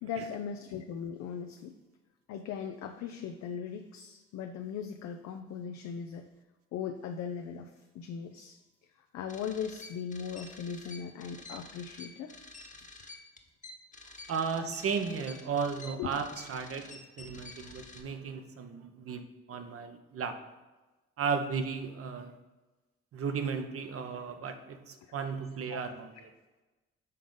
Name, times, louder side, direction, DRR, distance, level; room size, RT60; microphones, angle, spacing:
voice 1, 0.0-1.7 2.3-6.3 6.7-8.6 9.1-12.3 16.0-16.1 25.0-25.1 25.7-25.8, left 7 dB, 70° left, 6 dB, 0.5 m, -39 dB
sound 1, 9.3-18.0, left 2 dB, 25° left, 1.0 m, -49 dB
voice 2, 14.3-19.2 19.5-20.3 21.2-22.3 23.1-26.3, right 5 dB, 50° right, 7 dB, 0.8 m, -35 dB
5.5 x 3.7 x 5.3 m, 1.2 s
supercardioid pair, 60°, 29 cm